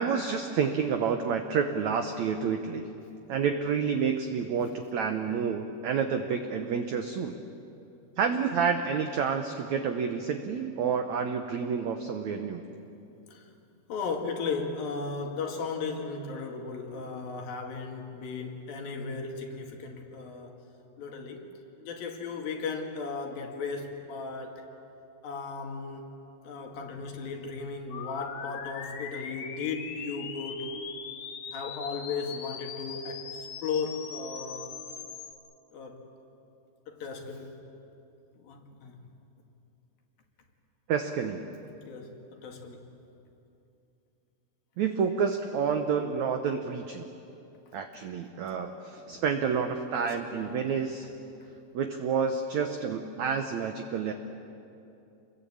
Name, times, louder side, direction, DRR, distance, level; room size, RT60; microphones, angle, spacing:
voice 1, 0.0-2.9 3.3-7.4 8.2-12.6 40.9-41.4 44.8-47.1 47.7-51.1 51.7-54.1, right 6 dB, 75° right, 6 dB, 1.7 m, -29 dB
voice 2, 13.9-20.6 21.0-21.5 21.8-24.7 25.2-26.2 26.4-30.9 31.5-34.8 35.7-36.0 36.9-37.6 38.4-39.0 41.8-42.9 49.1-49.2 49.5-49.7 50.0-50.6, left 4 dB, 65° left, 3 dB, 3.7 m, -36 dB
sound 1, 27.9-35.3, left 7 dB, 85° left, 3.7 m, -41 dB
27.5 x 21.5 x 8.6 m, 2.8 s
omnidirectional pair, 4.6 m